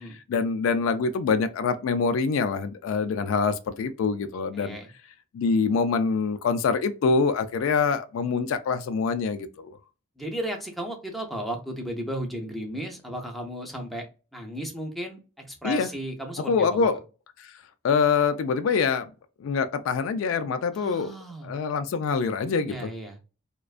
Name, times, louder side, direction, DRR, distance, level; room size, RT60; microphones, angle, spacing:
voice 1, 0.3-4.8 5.3-9.8 15.6-15.9 16.4-17.0 17.4-17.5 17.8-19.1 19.4-21.1 21.4-22.9, left 5 dB, 70° left, 0.3 m, -25 dB
voice 2, 4.5-4.9 10.2-14.1 14.3-16.9 20.7-21.5 22.6-23.2, equal, ahead, 0.4 m, -34 dB
2.4 x 2.2 x 2.4 m
head